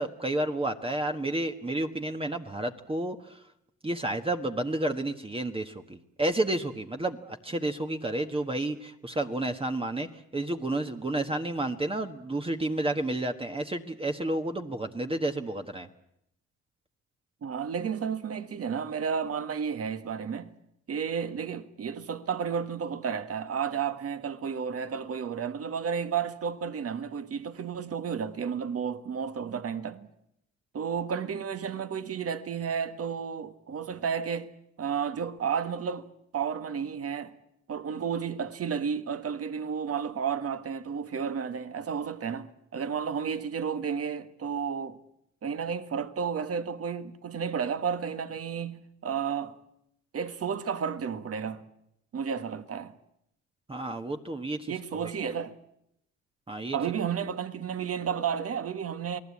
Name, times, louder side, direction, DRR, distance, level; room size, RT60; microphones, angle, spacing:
voice 1, 0.0-3.4 3.8-10.1 10.3-15.9 53.7-54.7 55.0-55.1 56.5-56.8, right 1 dB, 20° right, 1.3 m, -31 dB
voice 2, 17.4-20.5 20.9-30.1 30.7-34.5 34.8-36.1 36.3-37.3 37.7-45.0 45.4-49.6 50.1-51.6 52.1-52.9 54.7-55.6 56.7-59.2, right 7 dB, 50° right, 1.7 m, -32 dB
28.5 x 18.5 x 8.5 m
cardioid pair, 90°, 30 cm